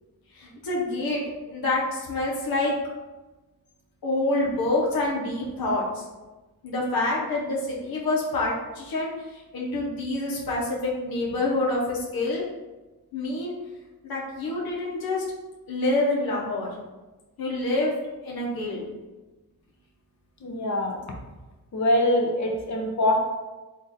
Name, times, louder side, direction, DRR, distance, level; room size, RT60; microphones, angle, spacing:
voice 1, 0.3-1.2 1.5-2.7 4.0-6.0 6.6-12.4 13.1-13.6 14.0-15.2 15.7-16.7 17.4-17.9 18.2-18.8, left 2 dB, 85° left, -4 dB, 0.9 m, -27 dB
voice 2, 20.4-21.0 21.7-23.2, left 1 dB, 50° left, 1 dB, 0.8 m, -23 dB
3.9 x 2.4 x 4.0 m, 1.1 s
wide cardioid pair, 110°, 35 cm